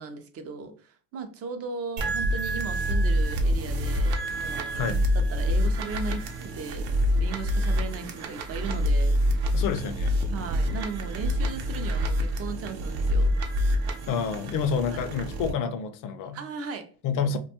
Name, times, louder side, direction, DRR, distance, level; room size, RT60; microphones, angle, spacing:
voice 1, 0.0-6.9 7.2-9.2 10.3-13.3 14.9-15.0 16.3-16.9, right 5 dB, 35° right, 0.4 m, -37 dB
sound 1, 2.0-15.5, equal, 80° right, 0.7 m, -26 dB
voice 2, 4.7-5.1 9.5-10.2 14.1-16.4 17.0-17.4, left 6 dB, 45° left, 0.4 m, -28 dB
2.5 x 2.2 x 2.8 m
cardioid pair, 120°, 46 cm